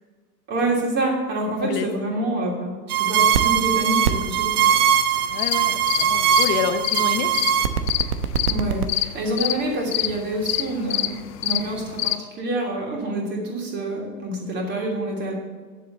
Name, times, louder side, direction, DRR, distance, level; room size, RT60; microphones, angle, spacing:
voice 1, 0.5-4.8 8.5-11.1 11.4-15.3, right 1 dB, 20° right, -1 dB, 3.1 m, -27 dB
sound 1, 2.9-8.8, right 9 dB, 65° right, 1.1 m, -20 dB
sound 2, 5.1-12.2, left 13 dB, 70° left, 0.8 m, -26 dB
voice 2, 5.3-7.3, left 8 dB, 25° left, 9 dB, 0.6 m, -27 dB
10.5 x 7.5 x 6.7 m, 1.5 s
hypercardioid pair, 140°, 49 cm